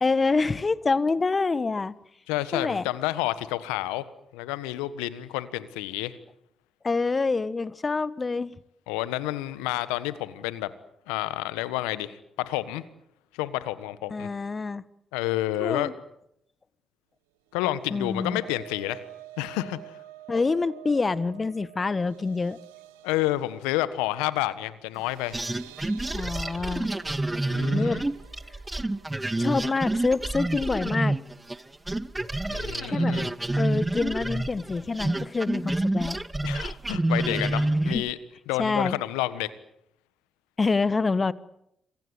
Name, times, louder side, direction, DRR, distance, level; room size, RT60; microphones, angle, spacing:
voice 1, 0.0-1.9 2.5-2.8 6.8-8.5 14.1-14.8 15.6-15.9 17.9-18.4 20.3-22.6 26.1-26.9 27.7-28.0 29.4-31.2 32.9-33.2 33.6-36.2 37.9-38.0 38.6-39.0 40.6-41.3, left 4 dB, 35° left, 17 dB, 1.3 m, -26 dB
voice 2, 2.3-4.1 4.3-6.2 8.9-10.7 11.1-12.8 13.3-14.3 15.1-15.9 17.5-19.0 19.4-20.0 23.0-25.4 27.5-28.0 32.5-33.3 36.4-38.2 38.5-39.5, left 16 dB, 80° left, 15 dB, 1.4 m, -29 dB
sound 1, 17.5-31.7 32.1-32.3 32.6-32.7, right 16 dB, 80° right, 1.1 m, -50 dB
sound 2, 25.3-31.6 31.9-38.1, right 2 dB, 15° right, 1.2 m, -28 dB
27.0 x 23.5 x 8.1 m, 0.78 s
hypercardioid pair, 40°, 0 cm